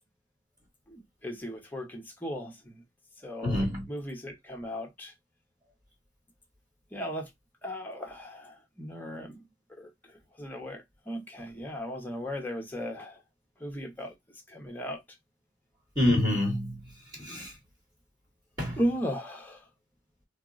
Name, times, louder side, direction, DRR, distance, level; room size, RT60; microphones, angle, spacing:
voice 1, 0.9-2.8 3.2-5.1 6.9-7.3 7.6-9.4 9.7-13.2 13.6-14.1 14.5-15.0 18.8-19.6, equal, 10° left, 0.8 m, -36 dB
voice 2, 3.4-3.8 16.0-17.5 18.6-18.8, left 1 dB, 20° right, 1.3 m, -27 dB
4.3 x 2.0 x 2.3 m
head